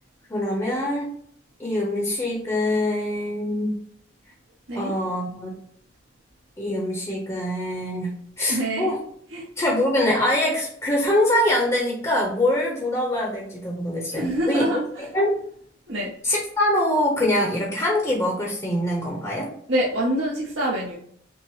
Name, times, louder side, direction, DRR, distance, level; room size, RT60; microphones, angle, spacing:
voice 1, 0.3-1.1 1.6-3.7 4.7-5.5 6.6-9.0 9.6-14.8 15.1-15.4 16.2-19.5, left 1 dB, 20° left, -2 dB, 0.7 m, -24 dB
voice 2, 8.5-8.9 9.3-9.4 14.1-15.0 15.9-16.1 19.7-20.9, equal, 85° right, -7 dB, 1.0 m, -25 dB
5.9 x 2.0 x 3.1 m, 0.64 s
head